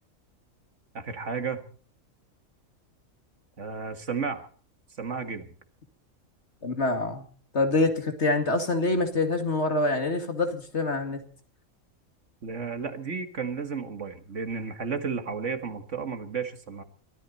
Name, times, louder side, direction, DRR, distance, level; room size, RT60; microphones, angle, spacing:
voice 1, 0.9-1.6 3.6-4.5 5.0-5.5 12.4-16.8, right 5 dB, 60° right, 8 dB, 2.0 m, -33 dB
voice 2, 6.6-7.2 7.5-11.2, left 2 dB, 50° left, 6 dB, 2.4 m, -25 dB
23.0 x 14.5 x 4.2 m, 0.43 s
omnidirectional pair, 1.5 m